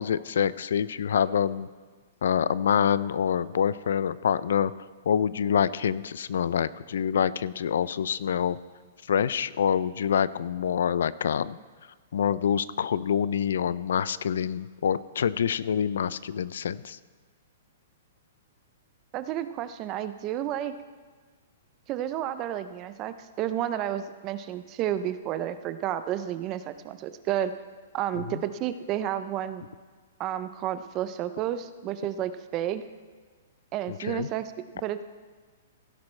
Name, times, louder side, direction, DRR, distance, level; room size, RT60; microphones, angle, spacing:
voice 1, 0.0-1.7 2.2-4.7 5.1-8.6 9.1-11.6 12.1-17.0 33.9-34.3, left 8 dB, 75° left, 18 dB, 0.4 m, -26 dB
voice 2, 19.1-20.7 21.9-27.5 27.9-29.6 30.2-32.8 33.7-34.5 34.8-35.0, right 11 dB, 25° right, 12 dB, 0.4 m, -31 dB
16.5 x 10.5 x 3.2 m, 1.5 s
hypercardioid pair, 170°, 0 cm